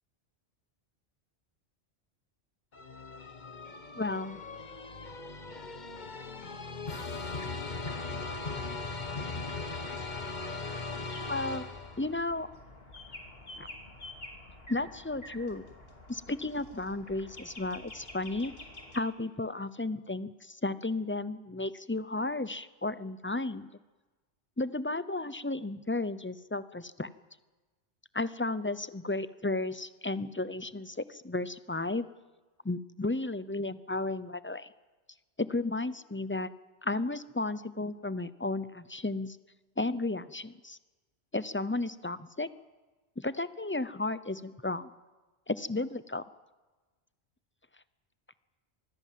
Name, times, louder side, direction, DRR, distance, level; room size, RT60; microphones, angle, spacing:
sound 1, 2.7-12.2, left 3 dB, 45° left, 1.4 m, -39 dB
voice 1, 3.9-4.4 11.3-11.7 12.0-12.5 13.6-13.7 14.7-15.6 16.1-18.5 18.9-23.7 24.6-27.1 28.1-32.1 32.6-34.7 35.4-36.5 36.8-39.4 39.8-40.8 41.3-42.5 43.2-44.9 45.5-46.2, left 2 dB, 15° left, 15 dB, 0.6 m, -33 dB
sound 2, 7.3-19.0, left 2 dB, 60° left, 3.1 m, -50 dB
25.5 x 20.5 x 7.6 m, 1.2 s
omnidirectional pair, 1.1 m